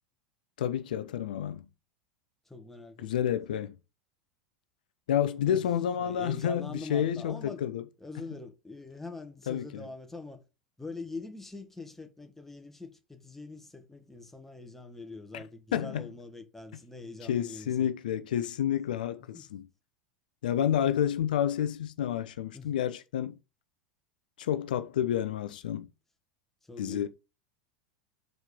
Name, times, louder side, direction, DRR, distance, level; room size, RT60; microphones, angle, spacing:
voice 1, 0.6-1.7 3.0-3.7 5.1-7.8 9.5-9.9 15.3-15.4 15.7-16.1 17.2-19.7 20.4-23.3 24.4-25.9 26.8-27.1, left 10 dB, 75° left, 0.6 m, -29 dB
voice 2, 2.5-3.1 5.5-5.6 6.0-7.6 8.0-10.4 10.8-17.9 19.3-19.4 22.5-22.9 26.6-27.1, left 3 dB, 5° left, 1.5 m, -44 dB
6.6 x 4.5 x 5.3 m
hypercardioid pair, 95°, 5 cm